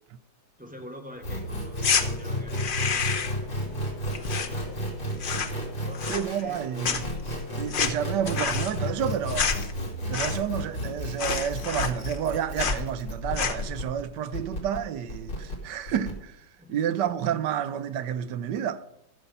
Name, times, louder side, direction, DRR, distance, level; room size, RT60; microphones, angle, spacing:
voice 1, 0.6-3.6 4.1-5.3 5.6-6.6 16.6-16.9, equal, 5° right, 1.4 m, -47 dB
sound 1, 1.2-16.1, equal, 80° left, 3.8 m, -32 dB
sound 2, 1.8-2.0 2.5-3.4 3.7-4.9 5.1-5.6 5.9-6.6 6.8-10.6 10.9-11.0 11.2-12.3 12.6-12.8 13.2-13.7, left 6 dB, 50° left, 0.6 m, -29 dB
voice 2, 6.1-7.1 7.6-9.5 10.1-16.4 16.7-18.8, right 9 dB, 70° right, 1.2 m, -30 dB
14.0 x 7.1 x 5.4 m
omnidirectional pair, 2.1 m